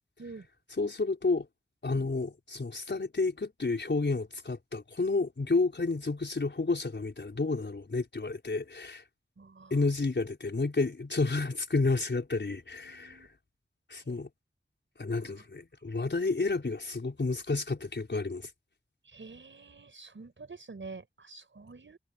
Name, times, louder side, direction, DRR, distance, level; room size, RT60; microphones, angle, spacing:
voice 1, 0.8-1.5 1.8-9.0 9.7-13.3 13.9-14.3 15.0-18.5, left 3 dB, 60° left, 5.3 m, -30 dB
voice 2, 9.4-9.7 12.5-13.3 14.0-14.2 15.2-15.4 19.1-22.0, right 3 dB, 70° right, 5.7 m, -48 dB
wide cardioid pair, 50°, 20 cm